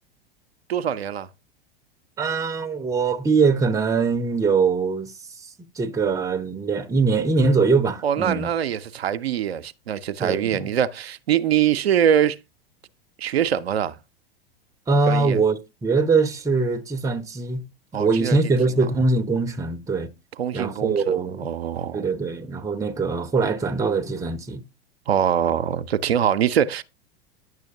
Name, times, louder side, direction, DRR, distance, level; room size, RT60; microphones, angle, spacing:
voice 1, 0.7-1.3 8.0-12.4 13.2-14.0 15.1-15.4 17.9-18.4 20.4-22.0 25.1-26.8, right 9 dB, 80° right, 0.5 m, -23 dB
voice 2, 2.2-5.1 5.8-8.5 10.2-10.7 14.9-17.6 17.9-20.1 20.5-21.5 21.9-24.6, right 4 dB, 10° right, 0.6 m, -22 dB
9.4 x 6.2 x 2.7 m
figure-of-eight pair, 95°, 31 cm